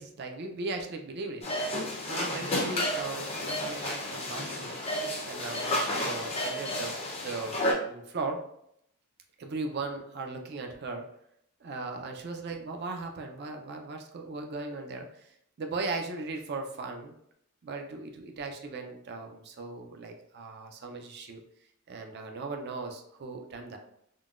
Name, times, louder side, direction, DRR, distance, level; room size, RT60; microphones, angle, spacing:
voice 1, 0.0-1.5 2.1-4.8 5.2-7.0 7.2-8.4 9.4-11.1 11.6-17.2 17.6-21.4 21.9-23.8, right 3 dB, 50° right, 4 dB, 0.4 m, -38 dB
sound 1, 1.4-7.7, left 1 dB, 25° left, 0.5 m, -31 dB
3.7 x 2.1 x 2.4 m, 0.73 s
head